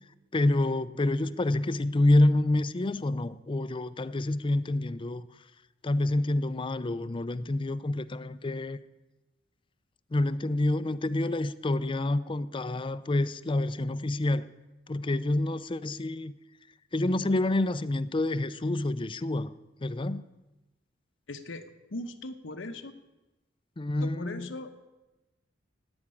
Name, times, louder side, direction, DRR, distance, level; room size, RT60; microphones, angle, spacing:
voice 1, 0.3-5.2 5.8-8.8 10.1-14.5 14.9-16.3 16.9-19.5 19.8-20.3 23.8-24.5, left 2 dB, 25° left, 0.5 m, -27 dB
voice 2, 21.3-21.7 21.9-22.9 24.0-24.8, left 2 dB, 80° left, 1.0 m, -39 dB
10.5 x 8.8 x 9.9 m
head